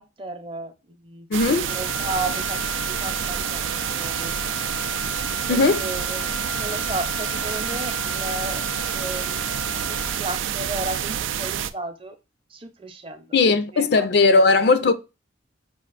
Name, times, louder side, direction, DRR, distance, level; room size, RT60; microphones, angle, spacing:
voice 1, 0.0-1.3 1.7-4.3 5.5-8.7 8.9-9.4 9.9-12.1 12.5-13.4 13.7-14.4, right 2 dB, 30° right, 0.6 m, -34 dB
voice 2, 1.3-1.7 5.5-5.8 13.3-14.9, left 3 dB, 55° left, 0.4 m, -18 dB
sound 1, 1.3-11.7, right 9 dB, 80° right, 0.3 m, -28 dB
Wind instrument woodwind instrument, 1.6-10.4, left 5 dB, 80° left, 0.8 m, -36 dB
5.6 x 2.4 x 2.4 m
head